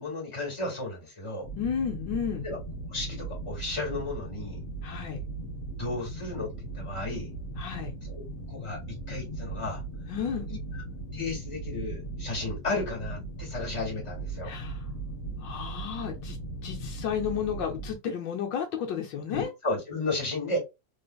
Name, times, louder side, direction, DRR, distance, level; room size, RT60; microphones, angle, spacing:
voice 1, 0.0-1.5 2.4-2.6 2.9-4.6 5.8-7.3 8.1-8.2 8.5-9.8 10.5-10.6 11.1-14.5 19.3-20.6, left 2 dB, 15° left, 1.9 m, -33 dB
sound 1, 1.4-18.0, right 2 dB, 40° left, 1.3 m, -38 dB
voice 2, 1.6-2.5 4.8-5.2 7.6-7.9 10.1-10.5 14.4-14.8 15.4-19.5, left 8 dB, 80° left, 1.4 m, -32 dB
3.4 x 3.2 x 2.3 m
omnidirectional pair, 2.0 m